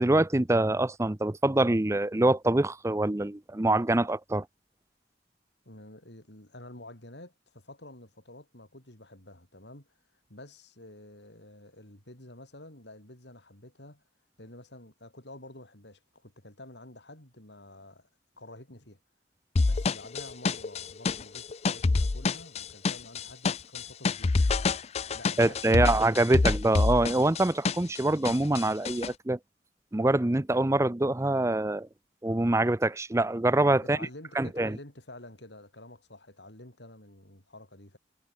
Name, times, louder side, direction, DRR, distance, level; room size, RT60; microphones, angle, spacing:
voice 1, 0.0-4.5 25.4-29.4 29.9-31.9 32.2-34.0 34.4-34.8, right 2 dB, 15° right, 0.6 m, -25 dB
voice 2, 5.6-10.0 10.3-14.0 14.4-18.1 18.4-19.0 19.6-24.5 25.1-26.6 33.8-38.0, left 1 dB, 75° left, 7.2 m, -49 dB
sound 1, 19.6-28.0 28.2-29.1, left 3 dB, 35° left, 0.5 m, -27 dB
head